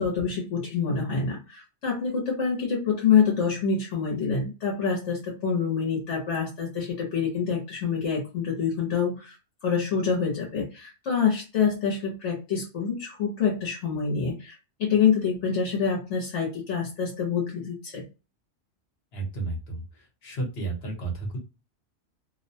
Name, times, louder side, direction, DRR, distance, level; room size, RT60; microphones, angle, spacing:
voice 1, 0.0-9.4 9.6-18.0, left 6 dB, 85° left, -1 dB, 1.1 m, -26 dB
voice 2, 19.1-19.8 20.2-21.4, right 2 dB, 65° left, 1 dB, 1.2 m, -32 dB
2.7 x 2.1 x 2.6 m, 0.30 s
omnidirectional pair, 1.2 m